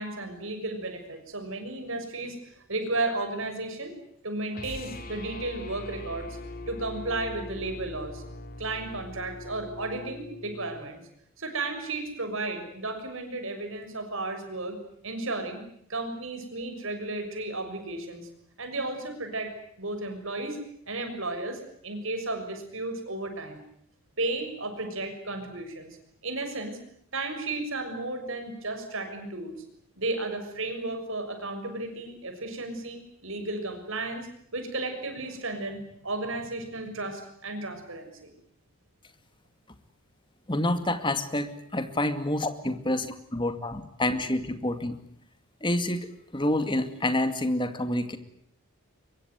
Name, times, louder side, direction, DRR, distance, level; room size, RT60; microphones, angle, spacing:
voice 1, 0.0-3.9 4.2-6.4 6.7-8.2 8.6-11.0 11.4-14.8 15.0-15.6 15.9-18.3 18.6-20.6 20.9-23.6 24.2-26.0 26.2-26.8 27.1-29.6 30.0-38.3, right 2 dB, 60° right, 6 dB, 6.5 m, -34 dB
sound 1, 4.5-10.9, left 2 dB, 40° left, 2.9 m, -41 dB
voice 2, 40.5-43.1 43.3-45.0 45.6-48.2, left 1 dB, 20° left, 9 dB, 2.3 m, -28 dB
24.5 x 22.5 x 9.4 m, 0.68 s
head